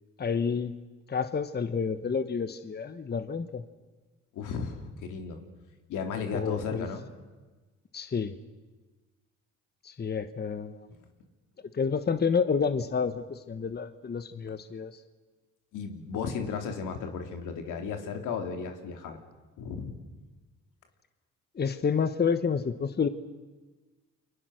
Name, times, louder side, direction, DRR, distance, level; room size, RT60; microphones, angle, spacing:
voice 1, 0.2-0.7 1.1-3.6 6.3-6.9 7.9-8.4 9.8-10.9 11.7-15.0 21.5-23.1, left 6 dB, 35° left, 11 dB, 1.2 m, -29 dB
voice 2, 4.3-5.4 5.9-7.0 15.7-19.2 19.6-20.0, left 6 dB, 85° left, 5 dB, 3.0 m, -34 dB
29.0 x 24.0 x 6.4 m, 1.3 s
cardioid pair, 90°, 30 cm